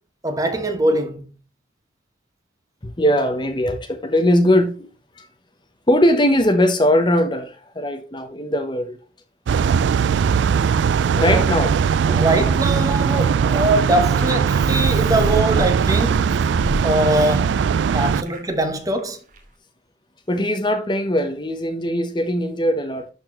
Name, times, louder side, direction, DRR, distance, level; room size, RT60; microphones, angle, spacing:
voice 1, 0.2-1.2 11.1-11.4 12.1-16.5 16.8-17.6 17.9-19.2, right 1 dB, 20° right, 1.1 m, -22 dB
voice 2, 2.8-4.9 5.2-5.3 5.9-9.0 11.2-11.7 20.3-23.1, left 1 dB, 25° left, 0.9 m, -20 dB
sound 1, 9.5-18.2, right 6 dB, 70° right, 0.3 m, -19 dB
sound 2, 16.2-17.9 18.2-18.7 19.0-19.1 19.3-19.4, equal, 40° right, 2.0 m, -31 dB
12.0 x 4.4 x 3.0 m
head